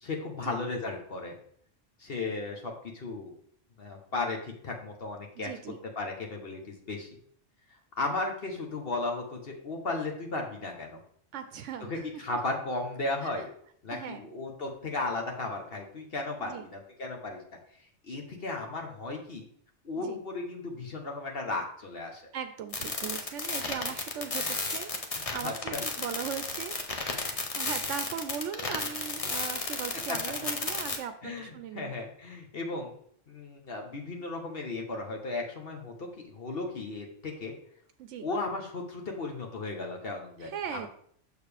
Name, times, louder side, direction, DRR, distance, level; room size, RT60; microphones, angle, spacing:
voice 1, 0.0-1.4 2.0-3.3 3.8-5.5 6.0-7.1 8.0-11.0 11.9-13.5 13.8-17.4 18.1-19.4 19.8-22.2 25.1-25.8 30.1-30.2 31.2-32.9 33.3-36.1 36.3-37.5 38.2-40.9, left 3 dB, 55° left, 1 dB, 1.1 m, -35 dB
voice 2, 5.4-5.8 11.3-12.3 13.2-13.3 13.9-14.3 16.4-16.6 20.0-20.2 22.3-24.9 25.3-26.8 27.0-31.9 38.0-38.3 40.4-40.9, right 8 dB, 80° right, 9 dB, 0.9 m, -39 dB
sound 1, 22.7-31.0, left 3 dB, 35° left, 0.8 m, -33 dB
6.8 x 6.5 x 3.3 m, 0.63 s
omnidirectional pair, 1.3 m